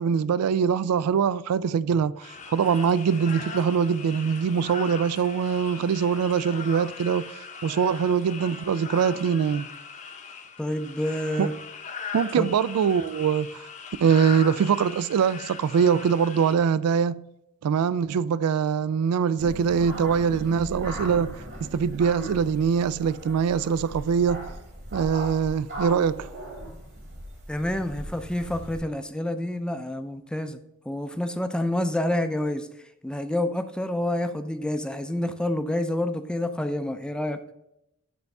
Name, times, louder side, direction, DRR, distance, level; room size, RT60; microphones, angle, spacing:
voice 1, 0.0-9.7 11.4-11.5 12.1-13.6 14.0-17.2 17.6-21.4 21.6-24.5 24.9-26.3, right 6 dB, 90° right, 0.3 m, -23 dB
sound 1, 2.2-16.6, left 5 dB, 35° left, 0.7 m, -40 dB
voice 2, 10.6-11.5 12.4-12.5 27.5-30.6 30.9-32.7 33.0-37.4, left 1 dB, 5° left, 0.4 m, -28 dB
sound 2, 19.4-28.8, right 1 dB, 60° right, 3.1 m, -38 dB
9.2 x 3.5 x 5.3 m
head